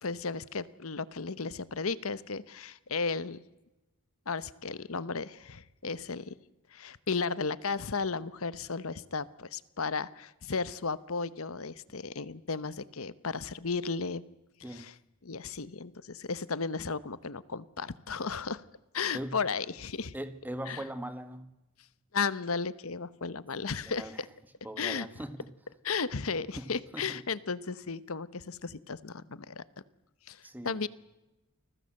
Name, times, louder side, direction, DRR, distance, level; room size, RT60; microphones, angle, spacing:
voice 1, 0.0-3.4 4.3-6.3 6.7-14.2 14.7-14.9 15.2-18.6 18.9-20.1 20.7-20.8 22.1-24.3 24.8-25.1 25.8-29.6 30.3-30.9, left 4 dB, 70° left, 1.0 m, -34 dB
voice 2, 20.1-21.5 23.8-24.2 24.6-25.5 26.6-27.2 30.4-30.8, right 1 dB, 10° right, 1.6 m, -40 dB
29.5 x 20.5 x 7.8 m
head